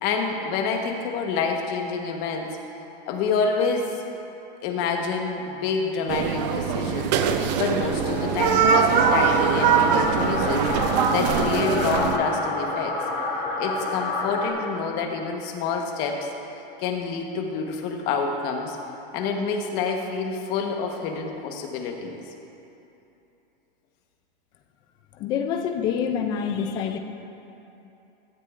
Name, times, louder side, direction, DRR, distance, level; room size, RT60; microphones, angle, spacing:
voice 1, 0.0-2.5 3.1-3.9 4.6-7.1 7.6-10.7 11.1-13.0 13.6-16.3 16.8-18.8 19.1-22.2, left 5 dB, 35° left, 2 dB, 1.1 m, -27 dB
sound 1, 6.1-12.2, right 6 dB, 45° right, 0.7 m, -22 dB
sound 2, 7.8-14.5, left 3 dB, 75° left, 2.9 m, -29 dB
voice 2, 25.1-27.0, left 7 dB, 15° left, 6 dB, 0.3 m, -26 dB
17.0 x 12.0 x 2.5 m, 2.9 s
supercardioid pair, 160°, 29 cm